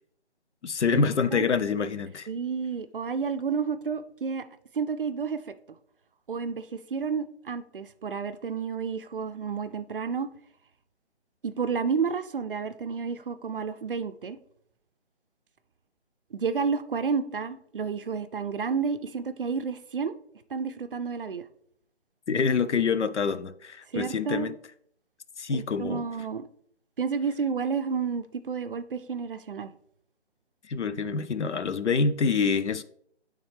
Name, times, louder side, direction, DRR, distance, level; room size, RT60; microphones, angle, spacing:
voice 1, 0.6-2.3 22.3-24.5 25.4-26.1 30.7-32.8, left 5 dB, 90° left, 0.6 m, -26 dB
voice 2, 2.3-4.4 4.7-5.5 6.3-10.3 11.4-14.4 16.3-20.1 20.5-21.5 23.9-24.5 25.5-26.5 27.0-29.7, right 5 dB, 55° right, 0.5 m, -30 dB
9.0 x 3.6 x 3.3 m
figure-of-eight pair, 155°, 34 cm